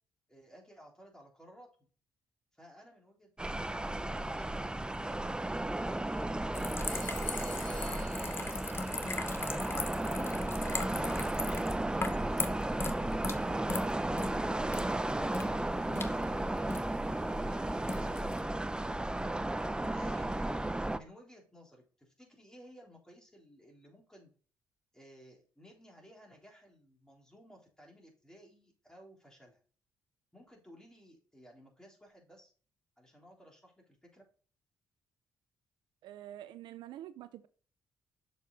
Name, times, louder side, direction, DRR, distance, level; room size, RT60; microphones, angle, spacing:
voice 1, 0.3-1.7 2.5-5.7 15.1-18.3 19.9-20.5 20.9-24.3 24.9-29.6 30.3-32.5 33.0-34.2, equal, 10° left, 0 dB, 3.4 m, -57 dB
sound 1, 3.4-21.0, right 1 dB, 10° right, 0.6 m, -34 dB
sound 2, 6.5-18.4, left 3 dB, 30° left, 1.0 m, -40 dB
Telephone, 6.9-8.9, left 4 dB, 75° left, 2.6 m, -50 dB
voice 2, 36.0-37.5, right 12 dB, 75° right, 14 dB, 0.5 m, -47 dB
6.7 x 5.1 x 4.0 m, 0.40 s
supercardioid pair, 50°, 8 cm